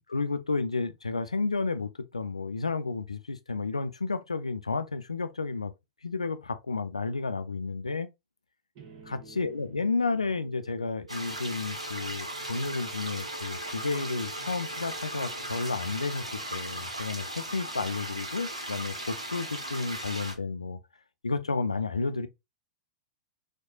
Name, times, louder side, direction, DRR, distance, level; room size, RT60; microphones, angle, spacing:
voice 1, 0.1-5.7 6.0-8.1 9.1-20.8 21.2-22.3, left 3 dB, 80° left, 0.4 m, -32 dB
sound 1, 8.7-16.7, right 4 dB, 45° right, 1.1 m, -48 dB
sound 2, 11.1-20.3, right 1 dB, 85° right, 0.8 m, -37 dB
4.6 x 2.2 x 2.3 m
figure-of-eight pair, 95°, 3 cm